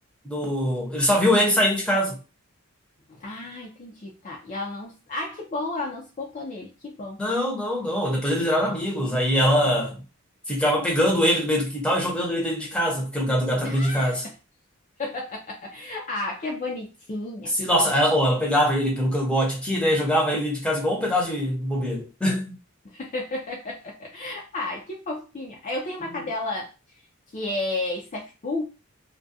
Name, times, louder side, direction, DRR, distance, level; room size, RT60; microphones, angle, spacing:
voice 1, 0.2-2.2 7.2-10.0 10.5-14.2 17.6-22.6 26.0-26.3, equal, 5° left, 0.8 m, -23 dB
voice 2, 3.1-7.2 13.6-14.3 15.0-17.5 22.8-26.7 27.3-28.7, left 2 dB, 35° left, 0.5 m, -32 dB
2.4 x 2.2 x 2.6 m
head